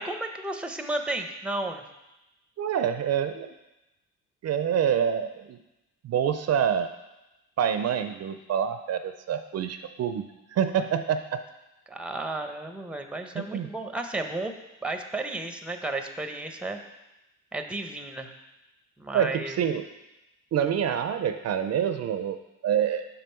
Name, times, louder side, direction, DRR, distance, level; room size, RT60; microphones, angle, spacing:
voice 1, 0.0-1.8 11.9-14.5 14.8-16.8 17.5-18.3 19.0-19.6, right 2 dB, 5° right, 6 dB, 0.7 m, -33 dB
voice 2, 2.6-3.5 4.4-5.6 6.0-6.9 7.6-11.4 13.4-13.7 19.1-19.9 20.5-23.1, right 8 dB, 60° right, 9 dB, 0.5 m, -27 dB
6.8 x 5.3 x 4.4 m, 0.96 s
cardioid pair, 90°, 30 cm